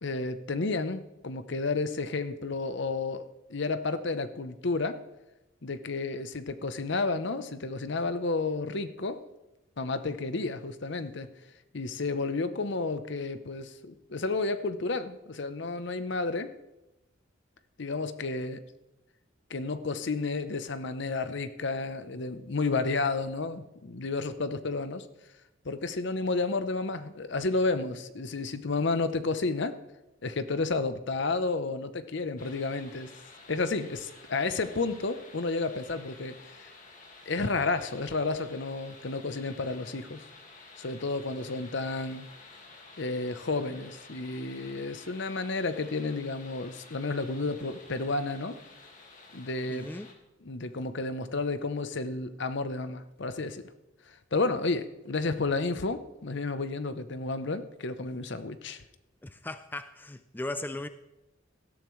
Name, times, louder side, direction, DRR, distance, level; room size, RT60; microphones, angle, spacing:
voice 1, 0.0-3.2 3.5-5.0 5.6-9.2 9.8-11.3 11.7-16.5 17.8-18.6 19.5-25.1 25.6-29.7 30.2-33.1 33.5-36.7 37.3-40.2 40.8-42.3 43.0-48.5 49.3-49.9 50.4-53.6 54.3-58.8, left 3 dB, 60° left, 11 dB, 0.8 m, -31 dB
sound 1, 32.4-50.1, left 3 dB, 40° left, 2.0 m, -52 dB
voice 2, 49.7-50.1 59.2-60.9, left 2 dB, 10° left, 10 dB, 0.4 m, -37 dB
17.5 x 13.0 x 3.2 m, 0.97 s
head